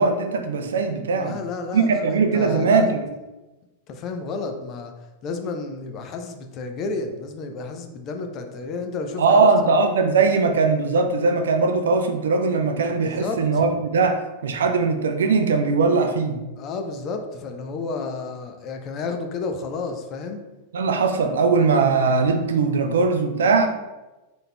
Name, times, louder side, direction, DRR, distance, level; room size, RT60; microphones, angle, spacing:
voice 1, 0.0-1.4 1.7-3.1 9.2-16.4 20.7-23.7, right 4 dB, 65° right, 6 dB, 0.4 m, -20 dB
voice 2, 1.2-2.9 3.9-4.9 5.2-9.5 13.0-13.6 16.6-20.4, left 4 dB, 35° left, 5 dB, 0.5 m, -31 dB
4.1 x 3.8 x 2.2 m, 1.1 s
figure-of-eight pair, 90°, 0 cm